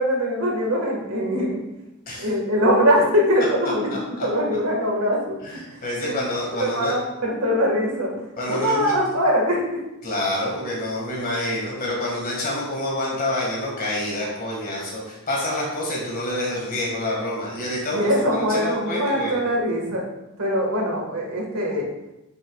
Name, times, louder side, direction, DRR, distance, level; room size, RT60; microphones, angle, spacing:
voice 1, 0.0-1.6 2.2-3.9 4.2-5.4 6.0-6.1 6.6-8.1 8.5-9.8 17.9-20.1 20.4-21.8, equal, 70° right, -1 dB, 1.8 m, -22 dB
voice 2, 5.4-7.0 8.4-9.0 10.0-19.4, left 1 dB, 40° left, -4 dB, 1.9 m, -27 dB
10.0 x 6.1 x 2.4 m, 0.94 s
head